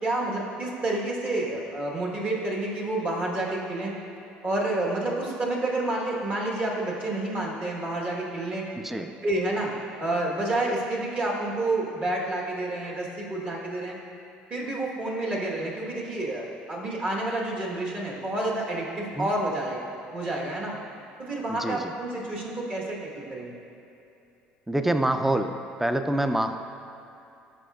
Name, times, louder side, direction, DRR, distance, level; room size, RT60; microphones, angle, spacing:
voice 1, 0.0-3.9 4.4-8.6 9.2-9.7 10.0-14.0 14.5-19.8 20.1-20.7 21.2-23.6, right 2 dB, 40° right, -3 dB, 1.2 m, -29 dB
voice 2, 21.5-21.8 24.7-25.5 25.8-26.6, right 1 dB, 5° right, 7 dB, 0.4 m, -25 dB
10.5 x 4.1 x 2.3 m, 2.8 s
supercardioid pair, 80°, 4 cm